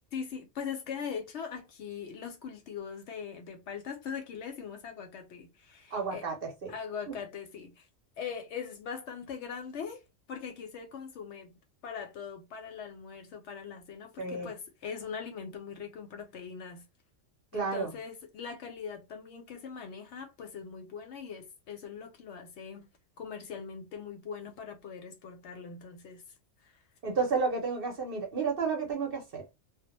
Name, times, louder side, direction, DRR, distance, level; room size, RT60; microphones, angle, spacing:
voice 1, 0.1-6.3 6.7-7.9 8.2-10.0 10.3-11.5 11.8-16.8 17.5-22.9 23.2-26.2 26.6-26.8, left 6 dB, 65° left, 0.8 m, -41 dB
voice 2, 5.9-6.7 14.2-14.5 17.5-17.9 27.0-29.4, right 4 dB, 50° right, 0.9 m, -31 dB
2.2 x 2.1 x 2.8 m
omnidirectional pair, 1.4 m